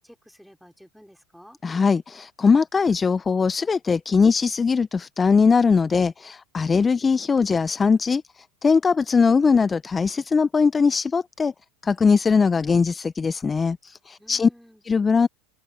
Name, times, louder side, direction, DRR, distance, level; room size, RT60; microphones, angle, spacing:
voice 1, 0.0-1.6 14.2-14.8, equal, ahead, 4.8 m, -51 dB
voice 2, 1.6-11.5 11.8-14.5 14.8-15.3, left 5 dB, 20° left, 0.5 m, -20 dB
open air
hypercardioid pair, 95°, 0 cm